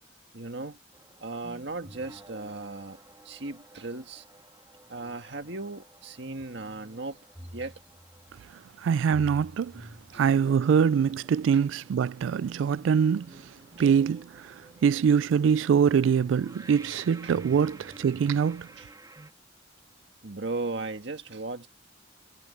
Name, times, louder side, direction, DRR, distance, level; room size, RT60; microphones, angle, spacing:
voice 1, 0.3-0.8 1.2-3.0 3.3-4.3 4.9-7.2 7.5-7.8 10.1-10.2 11.5-11.6 13.8-13.9 17.2-17.4 18.8-18.9 20.2-21.7, right 3 dB, 65° right, 1.8 m, -36 dB
sound 1, 0.9-19.3, right 1 dB, 20° right, 2.2 m, -50 dB
voice 2, 8.8-9.9 10.1-13.4 13.8-18.7, right 7 dB, 80° right, 0.3 m, -24 dB
head